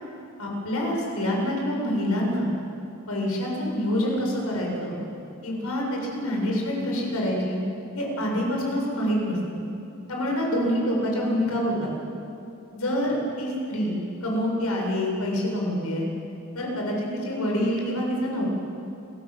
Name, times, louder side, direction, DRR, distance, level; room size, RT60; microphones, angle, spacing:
voice 1, 0.4-2.5 3.1-5.0 5.4-7.6 7.9-9.4 10.1-11.9 12.8-16.1 16.5-18.5, equal, 80° left, -1 dB, 7.3 m, -26 dB
30.0 x 18.0 x 8.1 m, 2.7 s
head